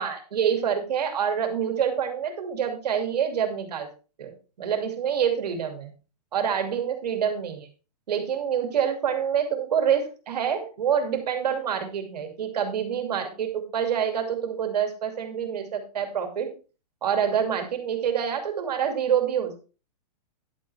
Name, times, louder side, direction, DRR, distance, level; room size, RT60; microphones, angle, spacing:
voice 1, 0.0-3.9 4.2-4.3 4.6-5.9 6.3-7.7 8.1-16.5 17.0-19.6, right 8 dB, 70° right, 5 dB, 2.5 m, -26 dB
10.5 x 8.6 x 3.3 m, 0.34 s
hypercardioid pair, 180°, 21 cm